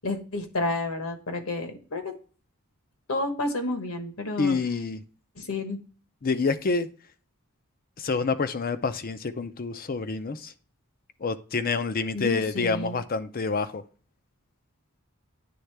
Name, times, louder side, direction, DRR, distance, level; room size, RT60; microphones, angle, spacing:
voice 1, 0.0-2.1 3.1-4.6 5.3-5.8 12.1-13.0, left 2 dB, 70° left, 1.2 m, -30 dB
voice 2, 4.4-5.0 6.2-6.9 8.0-10.5 11.2-13.8, left 4 dB, 40° left, 0.5 m, -27 dB
9.3 x 3.6 x 3.3 m
head